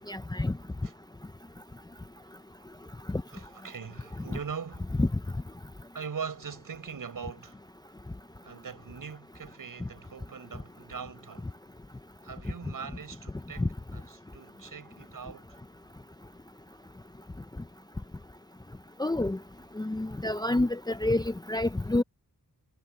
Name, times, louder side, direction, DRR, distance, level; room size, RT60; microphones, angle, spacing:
voice 1, 0.1-0.5 5.0-5.1 13.6-13.7 19.0-19.4 19.8-22.0, left 2 dB, 10° left, 0.7 m, -27 dB
voice 2, 3.3-4.9 5.9-7.6 8.4-11.5 12.2-15.6, right 6 dB, 65° right, 6.3 m, -41 dB
wide cardioid pair, 95°, 36 cm